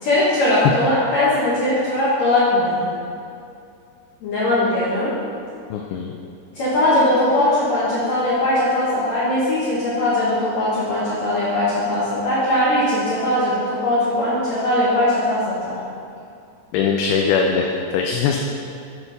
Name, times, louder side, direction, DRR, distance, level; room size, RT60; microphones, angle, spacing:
voice 1, 0.0-2.9 4.2-5.1 6.6-15.7, left 1 dB, 60° left, -10 dB, 2.0 m, -20 dB
voice 2, 5.7-6.1 16.7-18.4, left 5 dB, 80° left, 1 dB, 2.4 m, -21 dB
8.8 x 6.0 x 4.0 m, 2.5 s
omnidirectional pair, 4.6 m